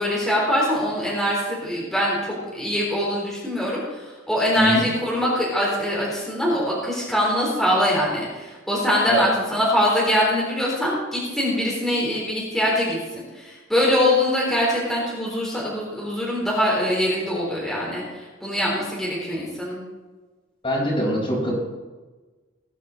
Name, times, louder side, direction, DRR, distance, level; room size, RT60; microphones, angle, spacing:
voice 1, 0.0-19.8, equal, ahead, -6 dB, 3.9 m, -23 dB
voice 2, 20.6-21.5, equal, 30° left, -2 dB, 4.8 m, -23 dB
19.5 x 10.0 x 4.1 m, 1.2 s
head